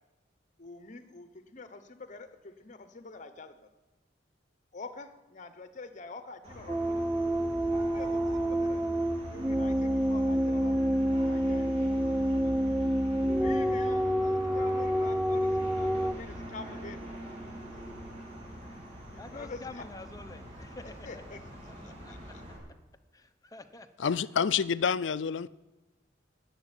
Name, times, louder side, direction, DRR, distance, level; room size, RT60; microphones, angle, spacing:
voice 1, 0.6-3.7 4.7-7.1 7.8-8.8 9.3-12.7 13.4-17.1 19.1-19.8 21.0-21.4 21.8-22.4, left 3 dB, 40° left, 1.0 m, -47 dB
sound 1, 6.4-22.6, equal, 35° right, 3.8 m, -45 dB
sound 2, 6.7-16.1, equal, 5° right, 0.3 m, -28 dB
voice 2, 19.2-21.1 22.0-22.3 23.1-24.1, left 3 dB, 20° left, 0.8 m, -47 dB
voice 3, 24.0-25.5, left 7 dB, 80° left, 0.5 m, -28 dB
11.0 x 8.1 x 9.8 m
head